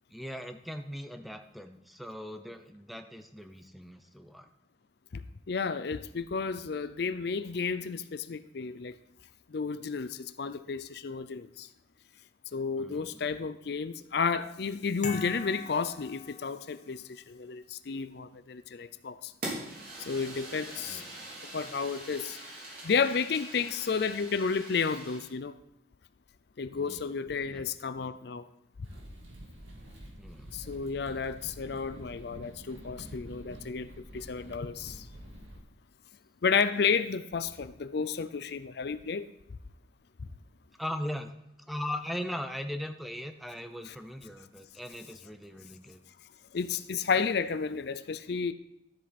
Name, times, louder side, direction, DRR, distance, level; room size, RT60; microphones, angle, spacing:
voice 1, 0.1-4.5 12.8-13.3 20.8-21.0 26.7-27.1 27.5-27.7 27.9-28.1 30.2-30.5 31.0-31.5 40.8-41.3 41.7-46.0, left 1 dB, ahead, 7 dB, 0.6 m, -39 dB
voice 2, 5.1-9.0 9.5-11.7 12.5-19.3 20.0-21.0 21.5-22.4 22.8-25.5 26.6-28.5 30.5-35.1 36.4-39.3 43.9-44.0 46.5-48.5, left 5 dB, 55° left, 13 dB, 0.5 m, -32 dB
sound 1, 15.0-16.9, left 4 dB, 40° left, 1.1 m, -42 dB
Fire, 19.4-25.3, right 1 dB, 50° right, 3.7 m, -43 dB
sound 2, 28.8-35.6, right 1 dB, 85° right, 2.1 m, -48 dB
12.5 x 7.7 x 4.2 m, 0.80 s
head